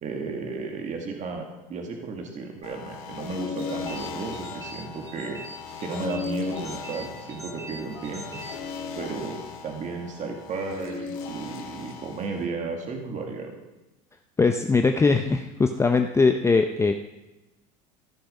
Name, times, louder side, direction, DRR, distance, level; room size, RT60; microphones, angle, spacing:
voice 1, 0.0-5.4 5.8-8.3 9.0-13.6, right 4 dB, 40° right, 3 dB, 2.0 m, -34 dB
sound 1, 2.6-12.4, left 5 dB, 80° left, 2.1 m, -37 dB
sound 2, 3.6-9.3, right 2 dB, 20° right, 3.6 m, -44 dB
voice 2, 14.4-16.9, left 4 dB, 15° left, 6 dB, 0.6 m, -21 dB
15.0 x 6.8 x 5.5 m, 1.0 s
supercardioid pair, 105°, 19 cm